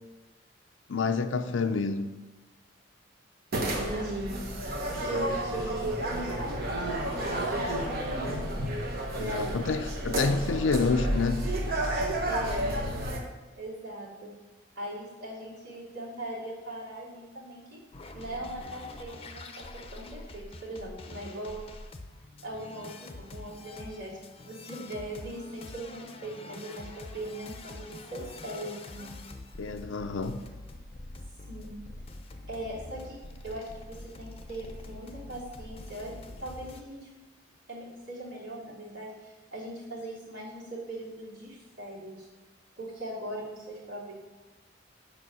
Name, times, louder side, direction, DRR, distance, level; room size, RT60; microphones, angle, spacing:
voice 1, 0.9-2.1 9.2-11.5 29.6-30.4, left 4 dB, 90° left, 0.5 m, -28 dB
sound 1, 3.5-13.2, right 1 dB, 55° right, 1.3 m, -31 dB
voice 2, 3.6-4.4 5.0-8.6 9.1-9.7 10.1-10.6 12.2-12.8 13.6-14.4 14.7-17.8 18.1-21.6 22.4-24.2 24.4-29.1 31.5-31.8 32.5-33.2 33.4-36.1 36.4-37.1 37.7-42.3 42.8-44.1, right 1 dB, 75° right, 3.0 m, -39 dB
sound 2, 17.9-36.8, left 2 dB, 30° left, 0.7 m, -45 dB
7.0 x 5.3 x 6.1 m
head